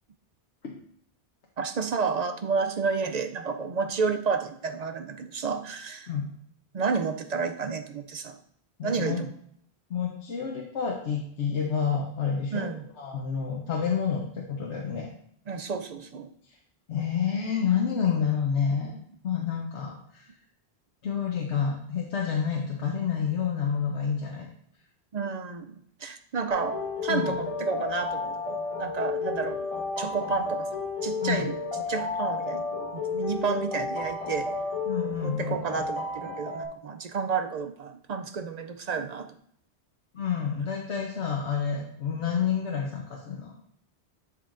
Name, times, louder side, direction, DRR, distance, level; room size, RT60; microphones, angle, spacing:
voice 1, 1.6-6.1 6.7-8.4 8.8-9.3 12.5-12.8 15.5-16.3 18.8-18.9 25.1-25.7 26.0-28.3 28.8-29.7 30.0-30.7 31.0-32.7 32.9-34.5 35.2-39.3, right 5 dB, 55° right, 7 dB, 0.4 m, -30 dB
voice 2, 8.8-9.2 9.9-12.7 13.0-15.1 16.9-19.0 19.2-20.3 21.0-24.5 27.1-27.4 31.2-31.5 34.9-35.7 40.1-43.5, left 7 dB, 80° left, -1 dB, 1.2 m, -29 dB
sound 1, 26.5-36.7, left 4 dB, 30° left, 1.5 m, -32 dB
10.5 x 4.6 x 2.5 m, 0.68 s
omnidirectional pair, 1.1 m